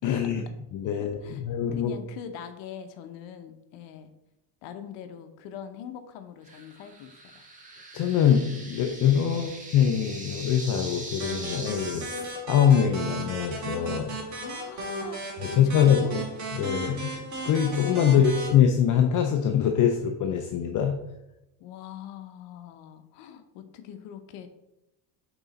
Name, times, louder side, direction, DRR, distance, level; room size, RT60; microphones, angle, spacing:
voice 1, 0.0-0.4 0.7-1.9 7.9-14.2 15.4-16.0 16.5-17.1 17.4-21.0, left 8 dB, 45° left, 4 dB, 0.6 m, -23 dB
voice 2, 0.9-1.5 1.7-4.1 4.6-7.4 9.3-9.5 14.4-16.3 18.0-18.4 21.6-24.5, left 8 dB, 80° left, 9 dB, 0.8 m, -42 dB
sound 1, 6.5-12.3, right 2 dB, 20° right, 1.1 m, -42 dB
sound 2, 11.2-18.5, right 2 dB, 40° right, 2.3 m, -35 dB
6.1 x 3.9 x 4.0 m, 0.91 s
cardioid pair, 130°, 43 cm